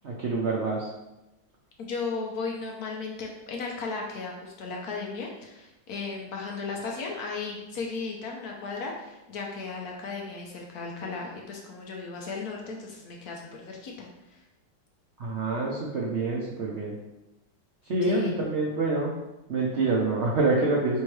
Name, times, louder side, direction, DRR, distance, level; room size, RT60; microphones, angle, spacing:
voice 1, 0.0-0.9 15.2-17.0 17.8-19.1 19.5-21.0, right 3 dB, 70° right, -4 dB, 0.6 m, -26 dB
voice 2, 1.8-14.4 18.0-18.3, left 4 dB, 70° left, 0 dB, 1.0 m, -36 dB
4.5 x 3.4 x 3.2 m, 0.96 s
omnidirectional pair, 2.0 m